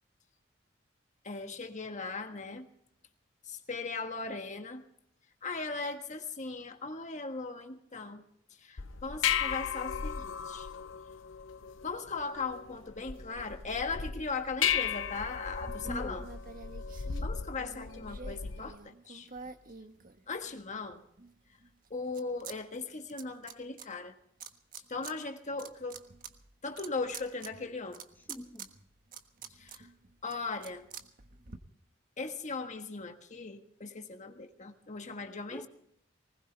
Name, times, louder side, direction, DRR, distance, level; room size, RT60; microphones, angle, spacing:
voice 1, 1.2-2.7 3.5-4.8 5.4-8.2 8.6-10.7 11.8-16.2 17.2-19.3 20.3-21.0 21.9-24.1 24.9-26.0 26.6-28.0 29.6-29.9 30.2-30.8 32.2-35.7, left 4 dB, 40° left, 5 dB, 1.5 m, -38 dB
sound 1, 8.8-18.7, left 8 dB, 85° left, 0.7 m, -36 dB
sound 2, 15.6-20.7 21.2-22.6 22.8-23.9 24.4-25.1 25.5-31.6, right 5 dB, 50° right, 1.4 m, -48 dB
voice 2, 15.8-16.3 28.2-28.7 35.5-35.7, left 1 dB, 10° left, 3 dB, 1.4 m, -43 dB
20.0 x 19.5 x 3.4 m, 0.72 s
head